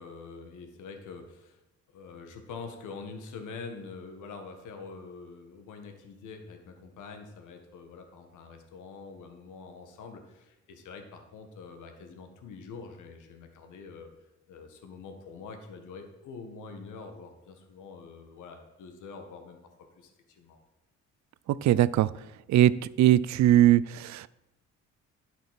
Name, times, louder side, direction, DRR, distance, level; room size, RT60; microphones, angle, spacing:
voice 1, 0.0-1.6 1.9-14.1 14.5-19.6 19.9-20.6, left 4 dB, 85° left, 5 dB, 1.5 m, -45 dB
voice 2, 21.6-22.1 22.5-22.7 23.0-24.3, right 13 dB, 70° right, 18 dB, 0.5 m, -20 dB
10.5 x 6.0 x 5.7 m, 0.95 s
cardioid pair, 90°, 30 cm